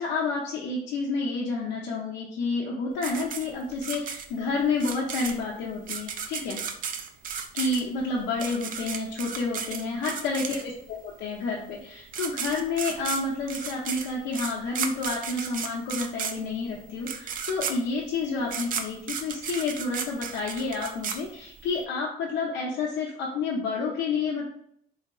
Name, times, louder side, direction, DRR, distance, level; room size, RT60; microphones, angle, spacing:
voice 1, 0.0-6.6 7.5-24.5, left 3 dB, 85° left, -3 dB, 0.6 m, -30 dB
sound 1, 3.0-10.9 11.8-11.9 12.1-21.8, right 7 dB, 55° right, 0.4 m, -34 dB
3.7 x 3.3 x 2.3 m, 0.69 s
cardioid pair, 110°, 17 cm